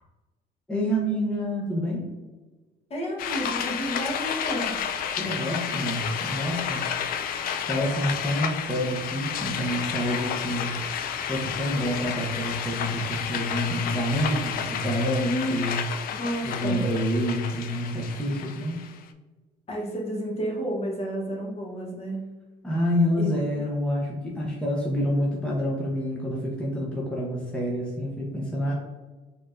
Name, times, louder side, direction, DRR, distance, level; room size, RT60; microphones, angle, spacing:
voice 1, 0.7-2.1 5.2-6.9 7.7-10.7 11.2-15.8 16.4-18.8 22.6-28.7, equal, 5° left, -4 dB, 0.8 m, -27 dB
voice 2, 2.9-4.9 12.7-12.9 15.2-15.6 16.1-16.8 19.7-22.3 23.2-23.6, equal, 35° left, -2 dB, 1.2 m, -31 dB
sound 1, 3.2-19.0, left 8 dB, 60° left, 0.4 m, -31 dB
4.3 x 3.1 x 2.5 m, 1.2 s
cardioid pair, 110°, 17 cm